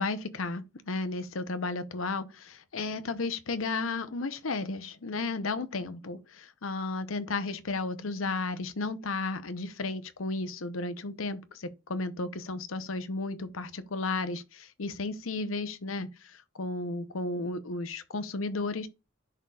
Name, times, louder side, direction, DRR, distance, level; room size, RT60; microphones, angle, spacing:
voice 1, 0.0-18.9, left 3 dB, 80° left, 0.8 m, -33 dB
11.0 x 3.9 x 2.4 m
head